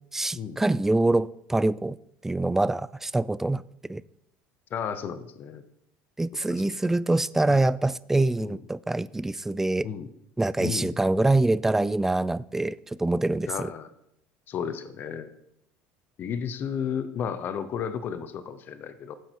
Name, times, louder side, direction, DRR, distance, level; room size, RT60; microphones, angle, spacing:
voice 1, 0.1-2.0 2.2-3.6 3.9-4.0 6.2-9.9 10.4-13.7, right 2 dB, 10° right, 0.3 m, -25 dB
voice 2, 4.7-5.6 6.5-7.0 7.5-7.7 8.4-8.6 9.8-10.1 10.6-11.0 13.5-13.9 14.5-15.3 16.2-19.1, left 7 dB, 45° left, 0.8 m, -33 dB
9.4 x 7.6 x 4.6 m
supercardioid pair, 100°, 5 cm